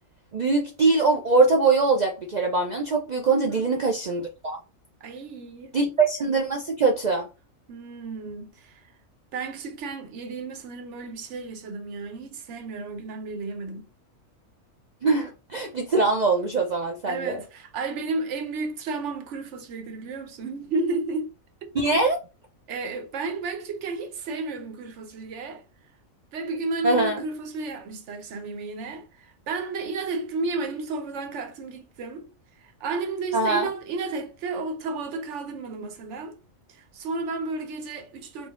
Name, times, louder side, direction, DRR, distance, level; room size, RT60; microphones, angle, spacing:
voice 1, 0.3-4.6 5.7-7.3 15.0-17.4 21.8-22.2 26.8-27.2 33.3-33.7, right 3 dB, 80° right, 0.4 m, -22 dB
voice 2, 3.3-3.7 5.0-5.8 7.7-8.9 9.3-13.8 17.0-21.3 21.6-21.7 22.7-25.6 26.3-32.3 32.6-36.4 36.7-38.5, right 3 dB, 60° right, 1.0 m, -32 dB
3.8 x 3.3 x 2.4 m
omnidirectional pair, 1.4 m